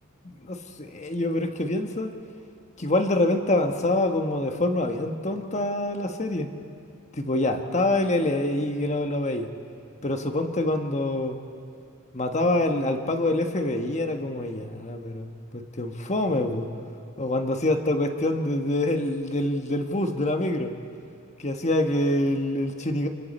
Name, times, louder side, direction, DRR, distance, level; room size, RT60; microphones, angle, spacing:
voice 1, 0.2-2.1 2.8-6.5 7.1-9.5 10.0-11.4 12.1-16.7 17.2-20.7 21.4-23.1, left 1 dB, 30° left, 5 dB, 1.3 m, -26 dB
28.5 x 28.5 x 4.3 m, 2.4 s
head